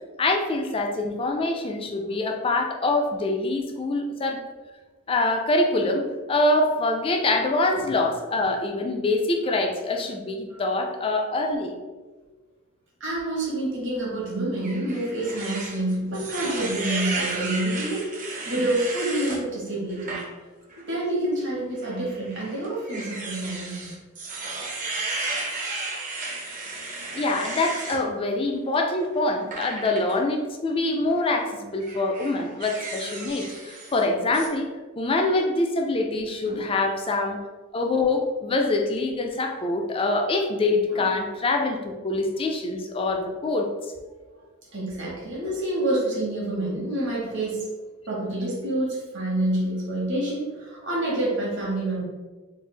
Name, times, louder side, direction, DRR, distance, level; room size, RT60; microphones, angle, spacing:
voice 1, 0.2-4.4 5.1-11.7 27.1-34.7 35.0-37.4 37.7-43.7, left 2 dB, 25° left, 3 dB, 0.3 m, -25 dB
voice 2, 13.0-18.1 18.4-20.2 20.8-23.9 36.4-36.7 40.9-41.1 44.7-47.7 48.1-52.0, right 1 dB, 60° right, -5 dB, 1.2 m, -27 dB
sound 1, 14.6-19.4 19.9-20.2 20.7-20.8 21.9-28.0 29.5-30.1 31.1-31.3 31.8-34.0 34.3-34.5, right 3 dB, 35° right, 0.6 m, -34 dB
3.2 x 2.4 x 3.3 m, 1.3 s
head